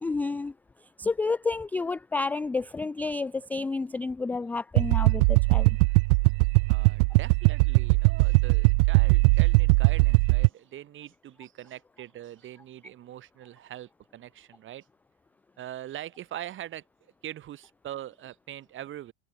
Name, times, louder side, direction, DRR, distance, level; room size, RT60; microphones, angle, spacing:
voice 1, 0.0-0.5 0.8-5.8, left 3 dB, 5° left, 0.3 m, -30 dB
sound 1, 4.8-10.5, right 30 dB, 55° right, 0.6 m, -20 dB
voice 2, 6.7-14.8 15.6-16.8 17.2-19.1, right 12 dB, 40° right, 5.6 m, -42 dB
hypercardioid pair, 100°, 32 cm